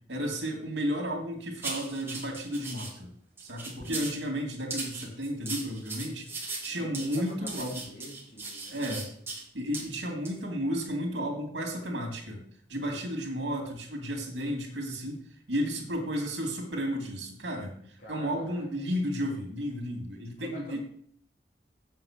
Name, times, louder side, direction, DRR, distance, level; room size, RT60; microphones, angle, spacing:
voice 1, 0.1-3.1 3.4-7.8 8.7-9.1 9.5-12.4 12.7-20.8, equal, 85° right, 2 dB, 2.6 m, -33 dB
sound 1, 1.6-2.9 3.4-4.2 4.7-9.4 9.7-9.9 10.2-10.4, right 3 dB, 15° right, 2.1 m, -38 dB
voice 2, 3.8-4.2 6.7-8.9 12.7-13.1 18.0-18.6 20.4-20.8, equal, 45° left, -7 dB, 2.9 m, -46 dB
7.7 x 5.8 x 7.4 m, 0.63 s
head